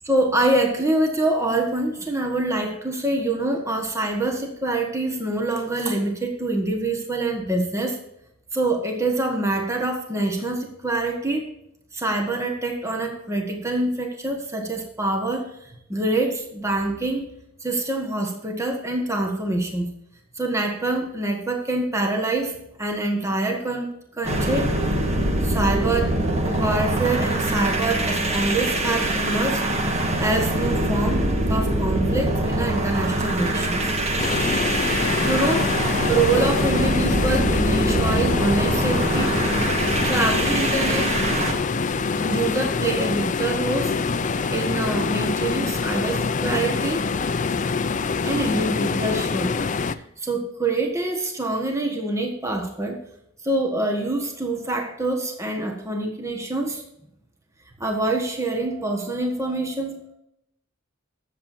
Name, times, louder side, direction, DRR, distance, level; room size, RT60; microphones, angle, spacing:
voice 1, 0.0-8.0 8.5-11.5 11.9-17.2 17.6-19.9 20.3-24.8 25.4-26.2 26.4-31.2 31.5-33.9 35.2-39.3 40.0-41.1 42.1-47.1 48.2-49.6 50.2-53.0 53.4-56.8 57.8-60.1, right 2 dB, 15° right, 2 dB, 1.4 m, -25 dB
sound 1, 24.2-41.6, right 1 dB, 30° right, 1.5 m, -23 dB
sound 2, 34.2-49.9, left 4 dB, 35° left, 0.5 m, -25 dB
21.0 x 7.5 x 2.7 m, 0.80 s
head